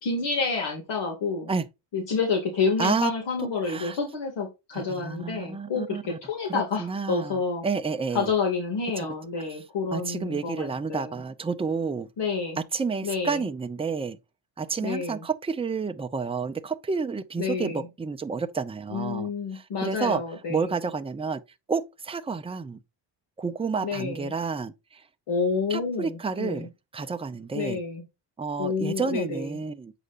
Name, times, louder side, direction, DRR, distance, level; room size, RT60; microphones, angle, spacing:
voice 1, 0.0-1.5 1.9-7.6 8.1-11.2 12.2-12.6 13.0-13.5 14.8-15.3 17.4-17.9 18.9-20.8 23.8-24.3 25.3-26.7 27.5-28.0 28.6-29.6, left 4 dB, 65° left, 2.4 m, -29 dB
voice 2, 2.8-3.1 3.7-4.0 4.7-6.2 6.5-7.3 7.6-8.3 9.0-9.1 9.9-12.1 12.7-14.2 14.6-19.3 19.8-20.2 20.5-21.4 21.7-22.8 23.4-24.7 25.7-26.7 26.9-27.8 28.4-29.9, right 5 dB, 15° right, 0.6 m, -30 dB
8.1 x 5.0 x 2.6 m
cardioid pair, 130°, 45 cm